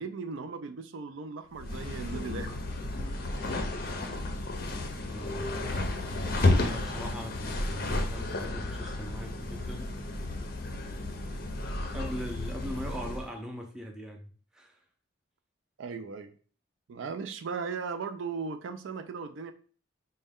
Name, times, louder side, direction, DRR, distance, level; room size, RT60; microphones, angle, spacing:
voice 1, 0.0-2.5 15.8-16.3 16.9-19.5, right 5 dB, 70° right, 8 dB, 0.4 m, -37 dB
sound 1, 1.6-13.3, left 2 dB, 45° left, 0.5 m, -32 dB
voice 2, 5.1-5.5 6.6-9.9 11.9-14.8, equal, 5° right, 1 dB, 0.5 m, -40 dB
5.2 x 2.2 x 3.5 m, 0.41 s
head